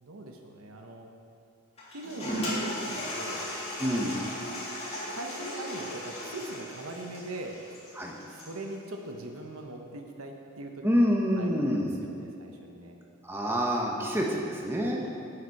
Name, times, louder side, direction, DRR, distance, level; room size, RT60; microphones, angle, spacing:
voice 1, 0.0-1.1 1.9-3.5 5.1-7.6 8.3-10.8 11.4-13.0 13.9-14.2 15.0-15.1, right 2 dB, 70° right, 3 dB, 0.9 m, -41 dB
Toilet flush, 1.8-8.7, equal, 30° left, 1.9 m, -36 dB
voice 2, 3.8-4.2 8.0-8.2 10.8-12.0 13.2-15.1, equal, 10° right, -2 dB, 0.8 m, -27 dB
9.7 x 8.0 x 4.7 m, 2.6 s
head